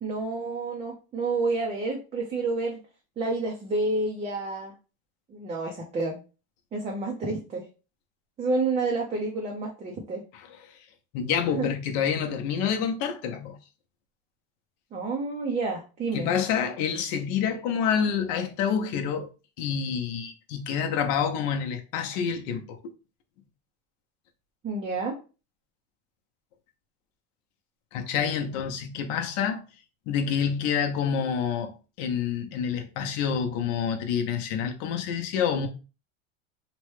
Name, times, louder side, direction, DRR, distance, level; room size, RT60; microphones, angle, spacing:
voice 1, 0.0-2.8 3.2-4.7 5.3-6.2 6.7-7.6 8.4-10.2 11.5-11.7 14.9-16.3 24.6-25.1, right 3 dB, 20° right, 0.5 m, -29 dB
voice 2, 11.1-13.6 16.1-19.3 19.6-22.8 27.9-29.6 30.1-35.7, left 7 dB, 55° left, 0.7 m, -27 dB
3.0 x 2.2 x 3.1 m
supercardioid pair, 145°, 33 cm